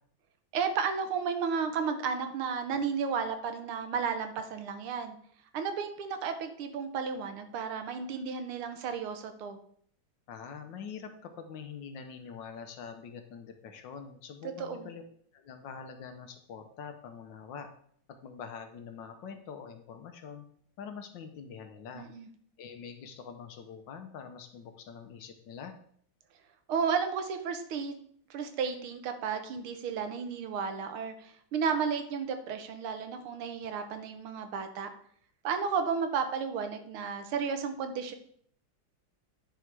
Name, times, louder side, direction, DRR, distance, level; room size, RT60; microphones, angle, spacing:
voice 1, 0.5-5.2 5.5-9.6 14.6-14.9 21.9-22.3 26.7-27.9 28.3-34.9 35.4-38.2, right 6 dB, 90° right, 8 dB, 1.8 m, -33 dB
voice 2, 10.3-15.0 15.3-17.7 18.2-20.4 20.8-22.1 22.6-25.7, left 6 dB, 65° left, 6 dB, 1.4 m, -44 dB
10.5 x 4.4 x 4.7 m, 0.62 s
omnidirectional pair, 2.3 m